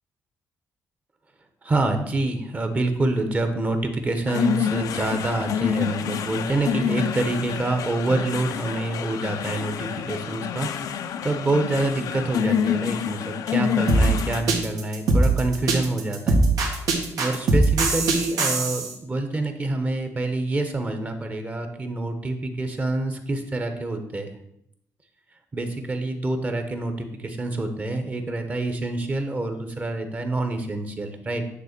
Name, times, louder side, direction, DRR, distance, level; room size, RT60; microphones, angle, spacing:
voice 1, 1.6-16.4 17.2-24.3 25.5-31.4, right 2 dB, 25° right, 6 dB, 1.2 m, -27 dB
sound 1, 4.3-14.4, left 8 dB, 75° left, 0.7 m, -27 dB
sound 2, 13.9-18.9, right 2 dB, 75° right, 2.1 m, -20 dB
9.8 x 3.8 x 6.7 m, 0.75 s
cardioid pair, 140°, 6 cm